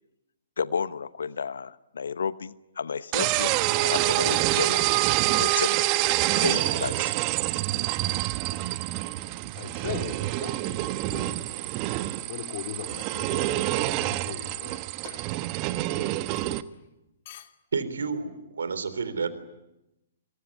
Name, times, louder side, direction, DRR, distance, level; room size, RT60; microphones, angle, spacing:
voice 1, 0.6-4.9 5.3-5.9 6.3-7.1, left 6 dB, 70° left, 1.0 m, -32 dB
sound 1, 3.1-16.6, right 17 dB, 35° right, 1.3 m, -27 dB
voice 2, 9.5-11.8 12.3-15.3 16.3-16.5 17.2-17.5, left 10 dB, 45° left, 2.7 m, -40 dB
voice 3, 17.7-19.3, right 5 dB, 70° right, 3.7 m, -30 dB
26.0 x 23.0 x 9.9 m
figure-of-eight pair, 120°, 0 cm